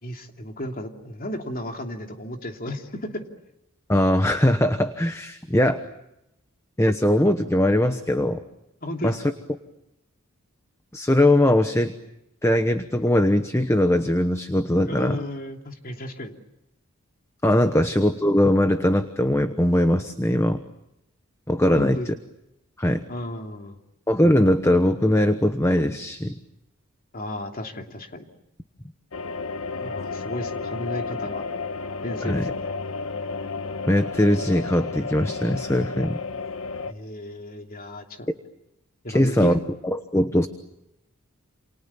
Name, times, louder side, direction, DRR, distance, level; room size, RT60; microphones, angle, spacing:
voice 1, 0.0-3.2 8.8-9.3 14.8-16.4 17.6-17.8 21.7-22.1 23.1-23.8 27.1-28.2 29.8-31.4 32.0-32.5 36.8-38.3 39.0-39.5, left 1 dB, 40° left, 4 dB, 2.9 m, -34 dB
voice 2, 3.9-5.8 6.8-8.4 9.0-9.2 10.9-11.9 12.4-15.2 17.4-20.6 21.5-22.0 22.8-23.0 24.1-26.4 32.2-32.5 33.9-36.2 39.1-40.5, left 1 dB, 15° left, 9 dB, 1.0 m, -21 dB
sound 1, 29.1-36.9, left 4 dB, 75° left, 1.2 m, -32 dB
28.5 x 28.0 x 7.1 m, 0.87 s
head